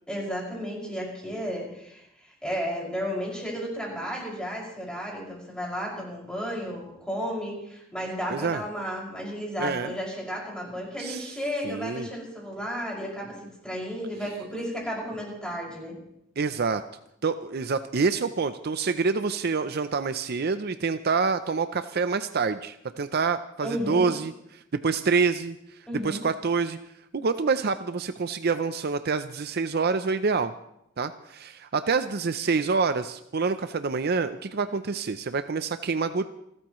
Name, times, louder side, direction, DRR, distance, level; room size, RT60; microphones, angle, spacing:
voice 1, 0.1-16.0 23.6-24.1 25.9-26.2, equal, 5° left, -3 dB, 5.9 m, -33 dB
voice 2, 8.3-8.6 9.6-9.9 11.0-11.3 11.6-12.1 16.4-16.8 17.2-25.6 26.0-26.8 27.1-30.5 31.0-36.3, right 4 dB, 55° right, 10 dB, 0.6 m, -27 dB
29.0 x 13.5 x 3.1 m, 0.79 s
head